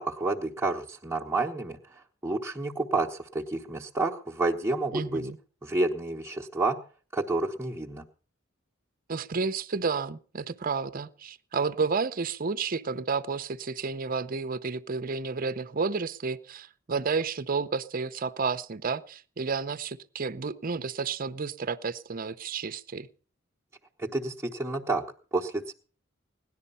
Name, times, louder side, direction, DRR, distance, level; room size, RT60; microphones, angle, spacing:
voice 1, 0.0-5.2 5.6-6.8 7.1-8.0 24.0-25.0 25.3-25.7, right 2 dB, 15° right, -4 dB, 1.0 m, -29 dB
voice 2, 4.9-5.4 9.1-23.1, right 4 dB, 45° right, 13 dB, 0.7 m, -31 dB
17.5 x 11.0 x 5.5 m, 0.41 s
head